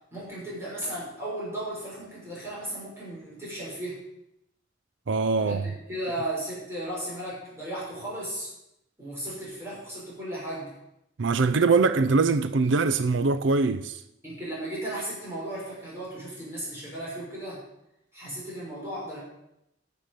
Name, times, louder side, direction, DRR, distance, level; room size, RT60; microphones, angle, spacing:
voice 1, 0.1-4.0 5.4-8.5 9.0-10.7 14.2-17.6 18.1-19.2, right 1 dB, 15° right, 5.9 m, -35 dB
voice 2, 5.1-5.6 11.2-14.0, right 4 dB, 85° right, 0.5 m, -23 dB
10.5 x 7.7 x 8.1 m
head